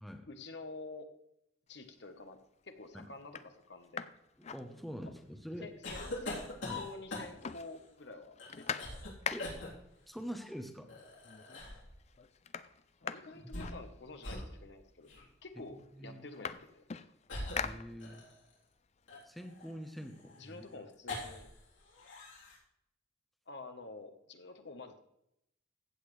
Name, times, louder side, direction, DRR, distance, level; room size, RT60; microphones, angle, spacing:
voice 1, 0.3-1.1 1.7-2.4 2.6-4.1 5.6-8.9 13.0-15.1 15.4-16.8 20.4-21.5 23.5-25.0, left 3 dB, 60° left, 7 dB, 1.1 m, -49 dB
sound 1, 1.8-2.3 2.8-2.9 3.2-5.3 5.6-5.7 6.0-6.8 7.1-9.8 10.7-10.8 11.2-11.7 12.0-14.4 15.2-15.3 15.6-18.4 18.8-20.6, left 7 dB, 35° left, 0.4 m, -44 dB
voice 2, 4.4-5.7 6.6-6.9 9.3-9.5 10.1-10.9 15.7-16.2 17.6-18.2 19.2-20.6, equal, ahead, 4 dB, 0.9 m, -45 dB
sound 2, 5.8-7.6 8.4-9.1 9.4-9.7 10.9-11.9 13.3-13.9 14.2-14.5 15.1-15.2 16.3-16.5 17.3-18.5 19.1-21.6 21.9-22.6, left 2 dB, 85° left, 3.5 m, -43 dB
15.5 x 8.3 x 3.3 m, 0.81 s
head